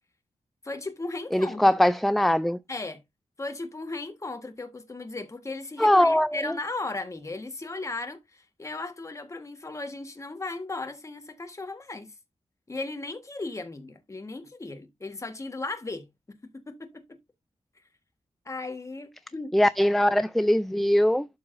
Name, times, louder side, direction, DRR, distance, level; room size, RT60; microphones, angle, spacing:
voice 1, 0.6-1.8 2.7-3.0 3.4-12.1 12.7-16.1 16.7-17.2 18.4-19.5, left 3 dB, 25° left, 1.3 m, -36 dB
voice 2, 1.3-2.6 5.8-6.6 19.5-21.3, left 1 dB, ahead, 0.3 m, -21 dB
12.0 x 4.7 x 2.5 m
wide cardioid pair, 120°, 12 cm